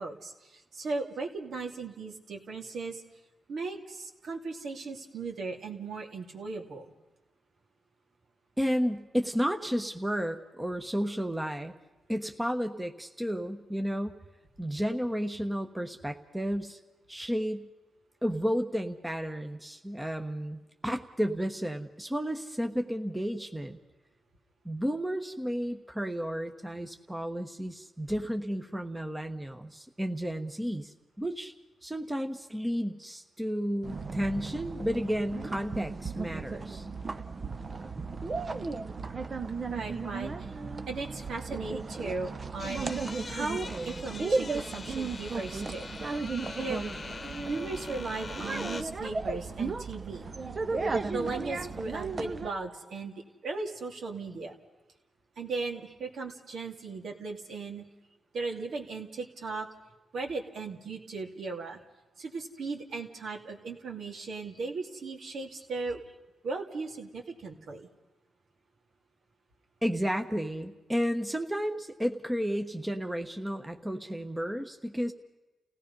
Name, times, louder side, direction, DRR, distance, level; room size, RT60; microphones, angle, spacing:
voice 1, 0.0-3.0 3.5-6.9 38.5-38.8 39.7-40.5 40.9-42.9 43.3-45.9 46.6-46.8 47.5-50.2 51.1-53.1 53.4-54.6 55.4-57.8 58.3-59.7 60.1-61.8 62.2-66.0 66.4-67.9, right 3 dB, 65° right, 2 dB, 2.7 m, -37 dB
voice 2, 8.6-11.7 12.1-14.2 14.6-16.8 17.1-17.7 18.2-23.8 24.6-31.5 31.8-36.9 69.8-75.1, equal, 10° right, 5 dB, 1.2 m, -32 dB
sound 1, 33.8-52.5, right 4 dB, 35° right, 0.9 m, -35 dB
sound 2, 42.6-48.8, left 4 dB, 35° left, 1.2 m, -42 dB
30.0 x 17.0 x 5.5 m, 1.1 s
cardioid pair, 105°, 0 cm